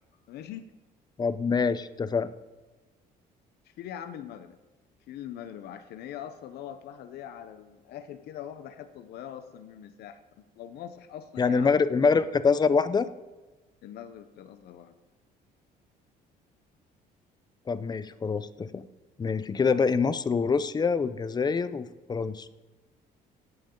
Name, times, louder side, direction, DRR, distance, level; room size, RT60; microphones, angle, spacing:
voice 1, 0.3-0.7 3.8-4.5 5.1-11.8 13.8-14.9, left 10 dB, 70° left, 9 dB, 0.8 m, -42 dB
voice 2, 1.2-2.3 11.4-13.1 17.7-18.8 19.2-22.5, left 5 dB, 25° left, 13 dB, 0.6 m, -25 dB
15.0 x 9.0 x 3.8 m, 1.2 s
cardioid pair, 110°, 17 cm